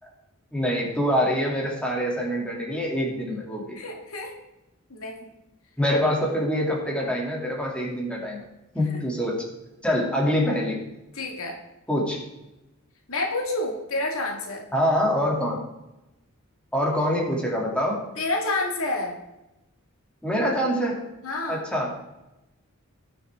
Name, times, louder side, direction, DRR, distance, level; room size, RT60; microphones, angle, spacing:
voice 1, 0.5-3.8 5.8-8.4 8.7-9.4 9.8-10.8 11.9-12.2 14.7-15.6 16.7-18.0 20.2-21.0 21.5-21.9, equal, 5° left, -3 dB, 2.7 m, -25 dB
voice 2, 3.8-4.3 4.9-5.3 8.9-9.0 11.1-11.6 13.1-14.6 18.2-19.2 21.2-21.6, left 2 dB, 80° left, 0 dB, 2.1 m, -29 dB
19.0 x 6.9 x 3.7 m, 0.96 s
head